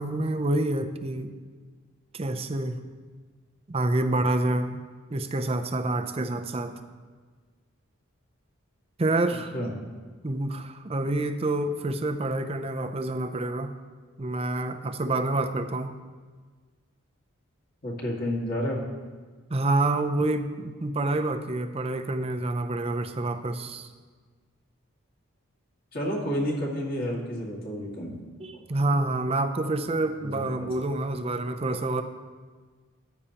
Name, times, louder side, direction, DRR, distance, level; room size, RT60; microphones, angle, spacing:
voice 1, 0.0-1.3 2.1-2.8 3.7-4.8 5.1-6.7 9.0-9.5 10.2-13.7 14.2-15.9 19.5-23.9 28.4-32.0, right 2 dB, 25° right, 8 dB, 0.5 m, -27 dB
voice 2, 17.8-18.8 25.9-28.2 30.2-30.7, equal, 45° left, -3 dB, 2.0 m, -30 dB
13.5 x 9.6 x 2.9 m, 1.5 s
head